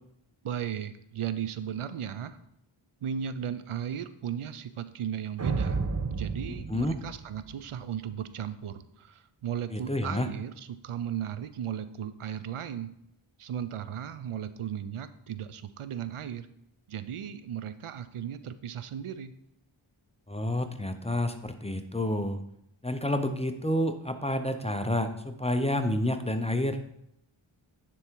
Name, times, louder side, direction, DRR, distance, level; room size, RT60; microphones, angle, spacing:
voice 1, 0.4-2.4 3.0-5.8 6.1-12.9 13.4-16.5 16.9-19.3, right 9 dB, 80° right, 13 dB, 0.6 m, -36 dB
sound 1, 5.4-7.9, right 4 dB, 30° right, 0.6 m, -32 dB
voice 2, 6.5-7.0 9.7-10.3 20.3-22.4 22.8-26.9, left 1 dB, 15° left, 8 dB, 0.5 m, -29 dB
10.0 x 3.5 x 4.5 m, 0.77 s
wide cardioid pair, 60°, 49 cm